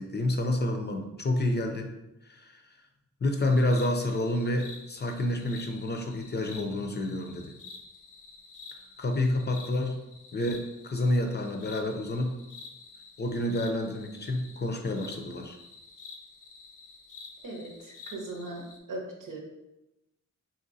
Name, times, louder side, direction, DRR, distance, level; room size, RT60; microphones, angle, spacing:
voice 1, 0.0-1.9 2.3-2.6 3.2-7.5 9.0-10.0 10.3-12.4 13.2-15.6, left 1 dB, 35° left, 3 dB, 0.5 m, -29 dB
sound 1, 3.4-18.8, left 4 dB, 80° left, 0.6 m, -49 dB
voice 2, 17.4-18.6 18.9-19.4, right 2 dB, 80° right, -1 dB, 0.9 m, -39 dB
3.9 x 2.8 x 2.6 m, 0.96 s
wide cardioid pair, 85°, 32 cm